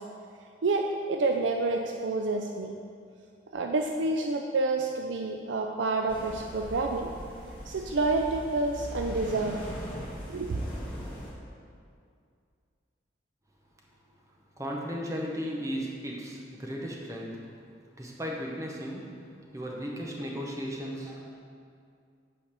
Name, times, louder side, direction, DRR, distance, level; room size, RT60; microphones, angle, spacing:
voice 1, 0.6-2.7 3.5-7.1 7.7-9.6 10.3-10.6, right 3 dB, 75° right, 2 dB, 0.5 m, -28 dB
sound 1, 6.1-11.3, equal, 10° left, 1.8 m, -40 dB
voice 2, 14.6-17.5 17.9-19.2 19.5-21.3, equal, 15° right, -2 dB, 1.0 m, -35 dB
8.6 x 4.0 x 6.7 m, 2.3 s
head